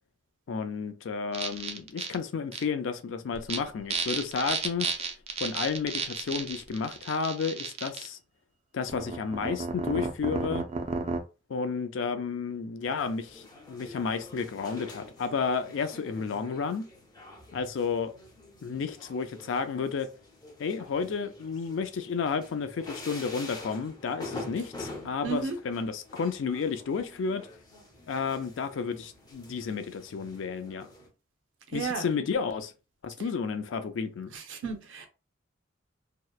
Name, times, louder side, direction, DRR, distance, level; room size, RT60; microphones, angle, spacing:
voice 1, 0.5-4.9 5.4-8.2 8.7-10.6 11.5-16.8 17.5-18.1 18.6-20.1 20.6-27.4 28.1-30.9 31.7-32.7 33.0-34.3, left 5 dB, 70° left, 0.4 m, -32 dB
sound 1, 1.3-2.1 2.5-2.6 3.3-3.6 3.9-8.1 8.9-11.2, right 4 dB, 35° right, 0.3 m, -32 dB
sound 2, 12.8-31.1, left 2 dB, 20° left, 0.6 m, -47 dB
voice 2, 25.2-25.6 31.7-32.1 34.3-35.1, right 5 dB, 75° right, 0.6 m, -33 dB
2.8 x 2.0 x 2.3 m
head